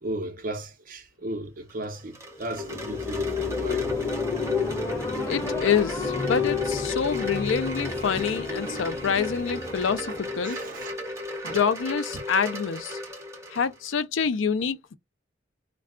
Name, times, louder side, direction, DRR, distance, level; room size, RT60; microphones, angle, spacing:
voice 1, 0.0-4.1 9.8-10.2 10.4-10.9 11.4-11.6, right 1 dB, 45° right, 0.7 m, -36 dB
Wind chime, 1.7-13.9, left 1 dB, 15° right, 0.8 m, -35 dB
sound 1, 2.4-11.0, left 5 dB, 15° left, 0.5 m, -31 dB
voice 2, 5.3-10.6 11.4-13.0 13.5-14.9, left 6 dB, 80° left, 0.5 m, -27 dB
2.3 x 2.3 x 3.5 m
head